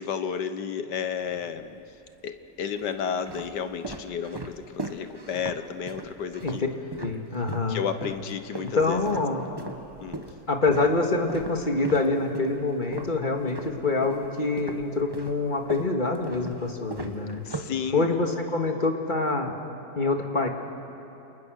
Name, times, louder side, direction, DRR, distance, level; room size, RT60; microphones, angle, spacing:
voice 1, 0.0-1.8 2.2-6.6 7.7-9.0 10.0-10.2 17.5-18.1, left 7 dB, 70° left, 10 dB, 1.6 m, -32 dB
sound 1, 1.2-1.9 2.6-7.7 8.0-14.3 14.6-18.3, right 2 dB, 15° right, 0.9 m, -39 dB
voice 2, 7.0-7.8 8.6-9.6 10.5-17.4 17.9-19.5 20.0-20.5, left 3 dB, 25° left, 3 dB, 2.1 m, -26 dB
29.0 x 28.0 x 6.5 m, 2.9 s
omnidirectional pair, 2.0 m